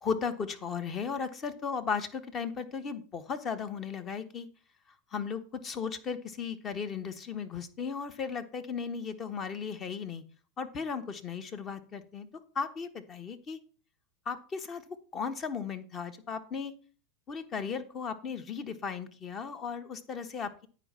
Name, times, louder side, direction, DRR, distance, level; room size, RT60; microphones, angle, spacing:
voice 1, 0.0-4.5 5.1-10.2 10.6-12.3 12.5-13.6 14.3-16.7 17.3-20.7, left 6 dB, 30° left, 10 dB, 1.1 m, -36 dB
9.1 x 5.2 x 5.6 m, 0.40 s
hypercardioid pair, 90°, 0 cm